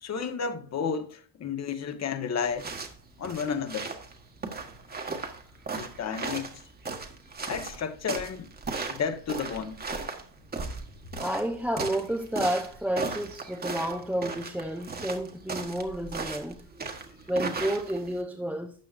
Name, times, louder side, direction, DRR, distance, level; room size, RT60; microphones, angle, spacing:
voice 1, 0.0-2.7 3.2-3.9 5.7-6.5 7.5-8.5 8.9-9.8, left 6 dB, 35° left, 1.5 m, -32 dB
sound 1, 2.4-18.2, right 4 dB, 20° right, 1.5 m, -37 dB
voice 2, 11.2-16.6 17.3-18.7, right 1 dB, 5° right, 0.9 m, -30 dB
13.0 x 8.5 x 2.6 m
cardioid pair, 135°, 44 cm